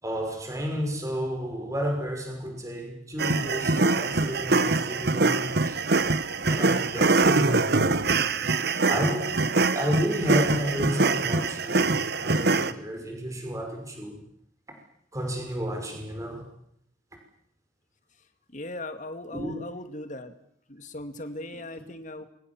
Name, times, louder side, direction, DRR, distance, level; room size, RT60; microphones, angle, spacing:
voice 1, 0.0-5.8 6.4-8.1 8.8-9.3 9.7-11.8 12.2-14.2 15.1-16.5 19.3-19.5, equal, 15° right, 5.9 m, -31 dB
sound 1, 3.2-12.7, right 3 dB, 55° right, 1.2 m, -24 dB
voice 2, 18.5-20.3 20.7-22.2, left 1 dB, 40° left, 2.3 m, -38 dB
27.5 x 23.5 x 7.3 m
head